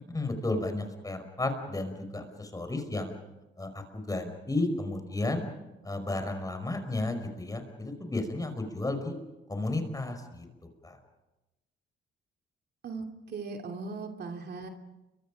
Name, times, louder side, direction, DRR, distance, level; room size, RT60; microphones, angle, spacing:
voice 1, 0.1-3.1 3.6-5.5 5.8-9.2 9.5-10.5 10.8-11.0, left 2 dB, 20° left, 7 dB, 5.3 m, -33 dB
voice 2, 12.8-14.7, right 4 dB, 55° right, 3 dB, 2.9 m, -38 dB
30.0 x 24.5 x 5.2 m, 1.0 s
cardioid pair, 90°, 20 cm